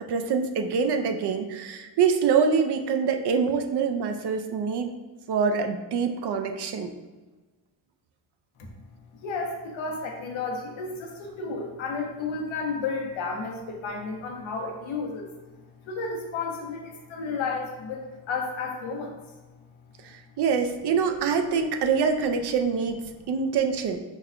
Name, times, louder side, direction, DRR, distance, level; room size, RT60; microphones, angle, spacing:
voice 1, 0.1-4.9 5.3-6.9 20.0-24.0, right 6 dB, 60° right, 5 dB, 0.5 m, -25 dB
voice 2, 9.2-15.3 15.9-19.1, left 4 dB, 80° left, 1 dB, 0.8 m, -32 dB
5.2 x 2.2 x 2.4 m, 1.3 s
cardioid pair, 85°, 46 cm